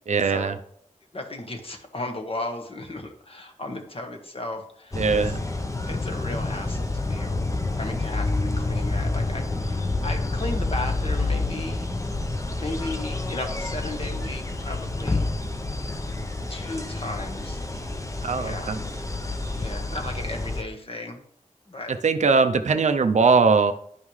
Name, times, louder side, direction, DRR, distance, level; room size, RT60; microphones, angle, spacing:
voice 1, 0.1-0.6 5.0-5.4 18.2-18.8 21.9-23.7, right 4 dB, 55° right, 7 dB, 0.6 m, -20 dB
voice 2, 1.1-5.4 5.9-7.4 7.8-11.9 12.6-15.2 16.5-17.6 18.4-18.8 19.5-21.2 21.7-21.9, left 2 dB, 40° left, 4 dB, 1.3 m, -35 dB
sound 1, 4.9-20.6, left 2 dB, 20° left, 0.8 m, -28 dB
10.5 x 5.5 x 3.2 m, 0.65 s
wide cardioid pair, 65°, 14 cm